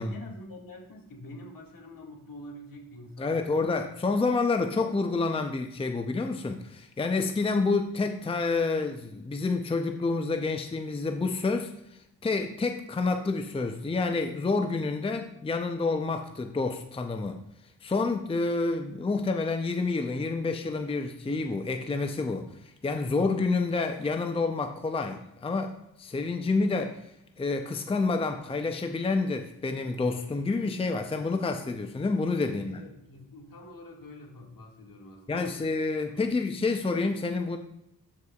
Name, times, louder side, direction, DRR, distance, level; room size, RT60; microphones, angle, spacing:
voice 1, 0.0-3.8 32.4-35.8 36.1-36.2, left 1 dB, 65° left, 0 dB, 2.0 m, -46 dB
voice 2, 3.2-17.4 17.8-27.0 27.4-32.8 35.3-37.6, left 3 dB, 15° left, 6 dB, 0.6 m, -28 dB
12.0 x 4.8 x 2.4 m, 0.83 s
cardioid pair, 70°, 36 cm